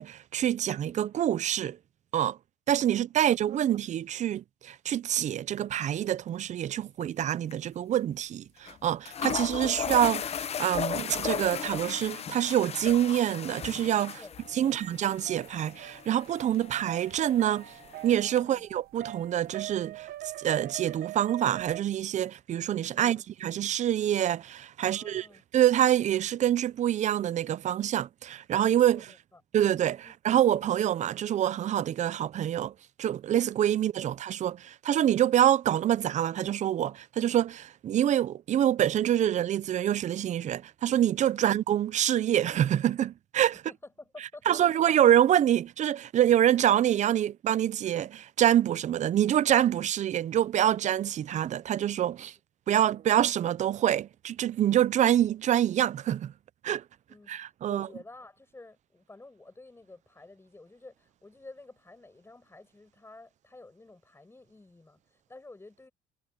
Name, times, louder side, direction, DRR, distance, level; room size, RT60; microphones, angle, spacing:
voice 1, 0.0-1.8 2.1-2.4 2.7-14.2 14.5-17.7 18.0-20.1 20.4-25.3 25.5-29.1 29.5-43.6 44.5-52.3 52.7-56.3 56.6-56.8 57.3-57.9, right 11 dB, 45° right, 0.6 m, -26 dB
voice 2, 3.1-3.7 14.2-14.8 18.4-18.7 22.9-23.3 24.8-25.4 28.9-29.4 30.0-30.1 33.7-33.9 41.3-41.6 43.7-44.6 52.7-53.0 57.1-65.9, left 2 dB, 15° left, 6.5 m, -51 dB
sound 1, 7.0-7.2 7.5-7.6 8.7-8.8 9.1-18.4, left 8 dB, 40° left, 0.7 m, -36 dB
sound 2, 14.4-21.8, right 14 dB, 65° right, 1.2 m, -43 dB
cardioid pair, 110°, 17 cm